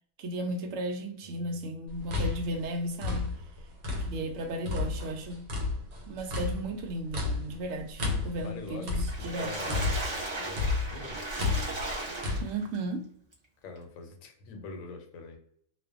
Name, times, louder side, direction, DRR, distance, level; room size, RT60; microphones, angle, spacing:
voice 1, 0.2-3.3 4.0-5.4 6.1-9.5 12.4-13.1, right 1 dB, 70° right, 0.9 m, -35 dB
voice 2, 1.2-1.8 4.1-4.8 8.3-9.8 10.4-11.2 13.6-15.4, left 4 dB, 75° left, 1.0 m, -44 dB
sound 1, 1.9-4.3 4.7-10.2 10.6-12.4, left 3 dB, 85° right, 1.2 m, -32 dB
Water / Splash splatter, 8.9-12.8 13.3-13.4 13.8-13.9, right 2 dB, 40° right, 0.4 m, -36 dB
2.5 x 2.2 x 2.3 m
omnidirectional pair, 1.5 m